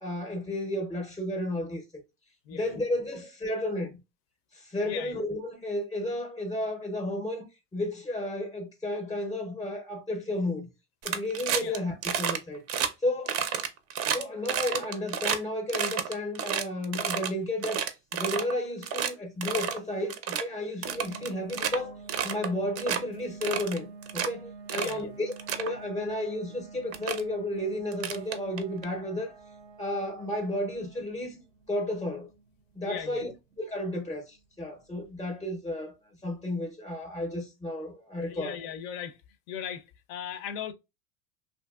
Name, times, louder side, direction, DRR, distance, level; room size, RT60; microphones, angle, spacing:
voice 1, 0.0-1.8 2.5-4.0 4.5-10.7 11.0-12.6 13.0-13.4 14.1-22.0 22.2-23.9 24.1-25.3 25.6-29.4 29.8-31.4 31.7-32.3 32.7-33.3 33.6-35.9 36.2-38.5, left 1 dB, 10° left, 0.5 m, -32 dB
voice 2, 2.5-2.8 4.8-5.2 11.6-11.8 24.8-25.2 32.8-33.3 38.2-39.2 39.5-40.7, left 9 dB, 65° left, 0.5 m, -38 dB
sound 1, 11.0-11.8 12.0-12.4 12.7-12.9 13.3-15.4 15.7-17.3 17.6-18.5 18.8-19.1 19.4-19.8 20.1-20.4 20.8-21.8 22.1-22.5 22.8-23.0 23.4-24.3 24.7-25.0 25.3-25.7 26.5-26.6 26.9-27.2 27.9-28.8, right 8 dB, 40° right, 0.5 m, -30 dB
sound 2, 20.8-35.4, right 4 dB, 85° right, 0.6 m, -49 dB
2.7 x 2.6 x 2.2 m
supercardioid pair, 110°, 38 cm